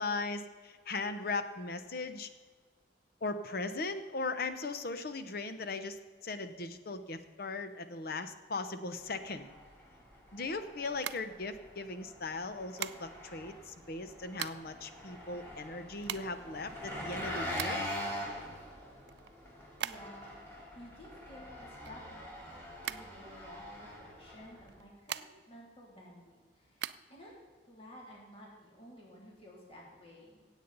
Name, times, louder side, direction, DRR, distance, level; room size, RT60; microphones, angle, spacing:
voice 1, 0.0-2.3 3.2-9.5 10.3-17.8, left 3 dB, 60° left, 10 dB, 0.8 m, -38 dB
Engine, 9.0-24.8, left 1 dB, 15° left, 3.3 m, -44 dB
sound 1, 10.9-11.9 12.8-13.4 14.0-14.8 15.1-15.2 15.4-18.0 18.4-20.3 20.6-22.4 22.8-23.8 24.6-25.6 26.0-26.9, right 11 dB, 65° right, 0.4 m, -41 dB
voice 2, 19.8-27.3 27.7-30.4, equal, 35° left, -3 dB, 2.8 m, -53 dB
16.5 x 8.3 x 4.0 m, 1.5 s
head